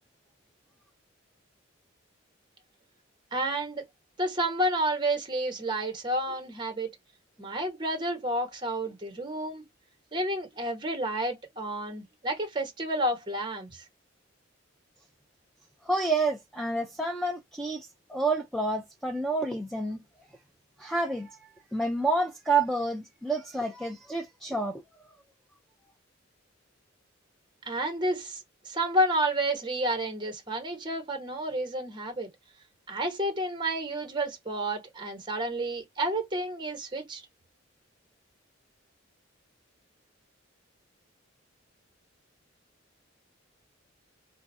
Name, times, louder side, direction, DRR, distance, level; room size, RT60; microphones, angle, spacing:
voice 1, 3.3-3.8 4.2-6.9 7.4-9.6 10.1-13.8 27.7-32.3 32.9-37.2, right 1 dB, 25° right, 0.9 m, -30 dB
voice 2, 15.8-20.0 20.8-21.4 21.7-25.1, right 2 dB, ahead, 0.3 m, -29 dB
2.6 x 2.3 x 4.1 m
head